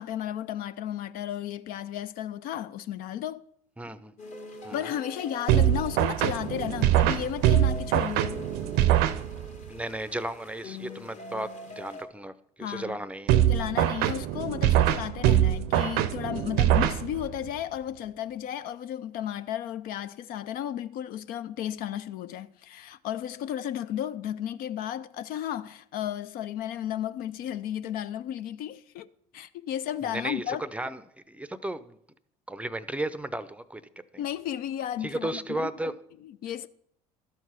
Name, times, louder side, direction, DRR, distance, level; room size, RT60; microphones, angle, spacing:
voice 1, 0.0-3.4 4.7-8.4 12.6-13.0 13.5-29.1 29.3-30.6 34.2-35.7 36.2-36.7, left 11 dB, 55° left, 0.4 m, -34 dB
voice 2, 3.8-4.1 4.6-4.9 9.7-12.3 12.6-13.4 30.0-31.0 31.3-32.0 32.5-33.8 35.0-35.9, right 1 dB, 5° right, 0.6 m, -34 dB
sound 1, 4.2-12.0, left 1 dB, 40° left, 1.7 m, -43 dB
sound 2, 5.5-9.7 13.3-17.5, right 12 dB, 65° right, 0.6 m, -24 dB
12.0 x 4.6 x 5.6 m
hypercardioid pair, 65°, 18 cm